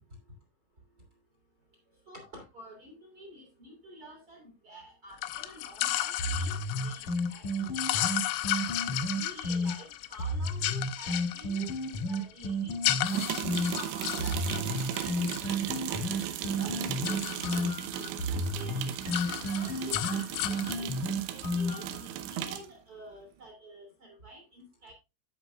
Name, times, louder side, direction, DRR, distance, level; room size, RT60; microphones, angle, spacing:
voice 1, 2.1-8.0 9.1-11.7 12.1-14.4 14.7-15.1 15.4-16.0 16.5-16.8 17.1-18.1 18.5-19.0 19.5-21.0 21.3-24.9, right 1 dB, 25° right, 1 dB, 2.2 m, -49 dB
sound 1, 5.2-16.3 16.5-18.1 18.4-18.6 18.9-20.7, left 15 dB, 85° left, 3.0 m, -34 dB
sound 2, 6.2-9.7 10.2-13.7 14.2-22.0, equal, 50° left, 2.3 m, -32 dB
sound 3, 13.1-22.7, right 11 dB, 75° right, 2.7 m, -36 dB
16.0 x 5.7 x 2.3 m, 0.26 s
omnidirectional pair, 6.0 m